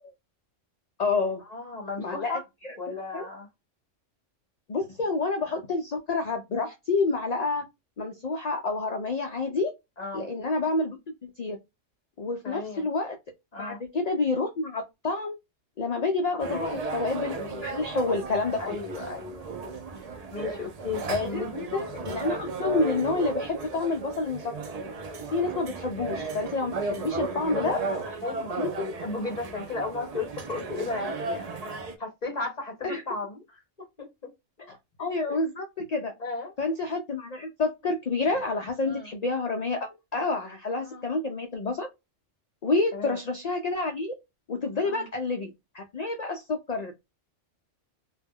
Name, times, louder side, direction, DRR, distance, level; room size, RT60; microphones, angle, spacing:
voice 1, 1.0-1.4 2.0-2.7 3.1-3.2 4.7-7.6 8.0-9.7 10.1-11.0 11.2-11.6 12.2-13.2 13.6-15.4 15.8-18.8 21.1-24.5 25.3-27.8 28.6-29.0 32.8-33.0 34.7-36.1 36.6-41.9 42.6-44.1 44.5-47.1, left 3 dB, 90° left, 0.3 m, -29 dB
voice 2, 1.5-2.4 2.8-3.5 10.0-10.3 12.4-12.9 13.5-13.8 16.3-16.8 18.6-19.5 20.3-21.6 27.4-31.5 32.0-34.3 34.6-34.7 35.3-35.4 36.2-36.5 38.8-39.1 40.8-41.1 42.9-43.2 44.8-45.1, left 3 dB, 45° left, 0.7 m, -35 dB
sound 1, 16.4-32.0, right 3 dB, 75° right, 0.3 m, -35 dB
2.2 x 2.1 x 3.5 m
omnidirectional pair, 1.3 m